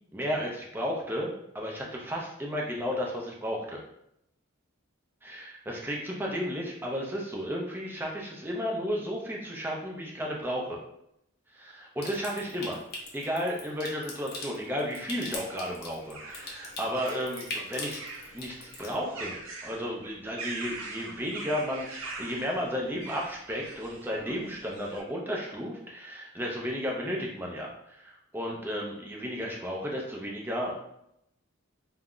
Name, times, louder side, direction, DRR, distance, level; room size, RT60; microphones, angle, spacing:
voice 1, 0.1-3.8 5.2-10.8 11.5-12.8 13.1-18.0 18.3-30.8, equal, 10° right, -2 dB, 0.4 m, -33 dB
Water tap faucet / Sink (filling or washing) / Trickle dribble, 12.0-18.9, left 2 dB, 50° left, 0.6 m, -42 dB
sound 1, 15.1-25.0, right 3 dB, 80° right, 0.6 m, -43 dB
2.2 x 2.0 x 3.6 m, 0.78 s
head